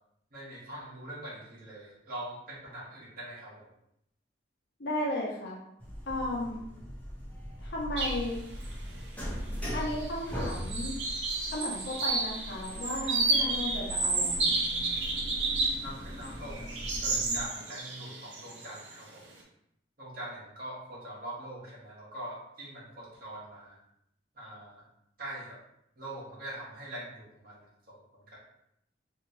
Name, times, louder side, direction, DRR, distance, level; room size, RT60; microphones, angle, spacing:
voice 1, 0.3-3.7 15.8-19.2 20.0-23.8 24.3-24.8 25.2-25.6 26.0-28.4, right 1 dB, 50° right, -6 dB, 1.2 m, -43 dB
voice 2, 4.8-5.6 6.1-6.7 7.6-8.4 9.7-11.0 11.5-14.5, left 1 dB, 60° left, -3 dB, 0.8 m, -34 dB
sound 1, 5.8-17.5, equal, 10° left, 0.7 m, -40 dB
sound 2, 8.0-8.3 8.6-8.7 9.7-10.1 10.4-15.9 16.2-18.9, right 3 dB, 70° right, 0.7 m, -31 dB
3.0 x 2.8 x 2.7 m, 0.77 s
head